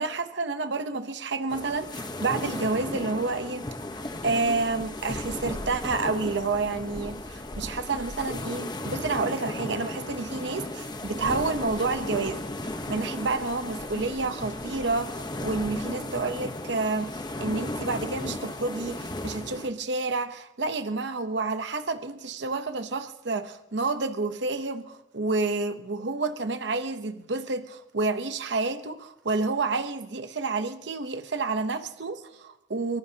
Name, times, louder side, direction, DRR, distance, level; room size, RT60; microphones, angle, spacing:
voice 1, 0.0-3.7 4.2-33.0, right 3 dB, 65° right, 9 dB, 0.8 m, -29 dB
sound 1, 1.5-19.7, left 1 dB, 20° left, 1.0 m, -35 dB
24.0 x 19.0 x 2.8 m, 0.88 s
head